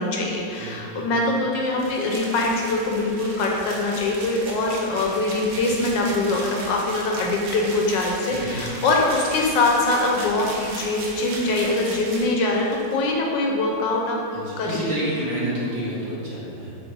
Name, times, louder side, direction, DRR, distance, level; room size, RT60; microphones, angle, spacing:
voice 1, 0.0-14.2 14.6-14.9, left 2 dB, 75° left, -1 dB, 1.3 m, -23 dB
voice 2, 0.6-1.1 8.3-8.6 14.3-16.8, right 1 dB, 45° right, -7 dB, 1.3 m, -29 dB
sound 1, 1.8-13.0, right 2 dB, 60° right, 1.3 m, -37 dB
7.0 x 3.0 x 4.5 m, 2.6 s
omnidirectional pair, 2.1 m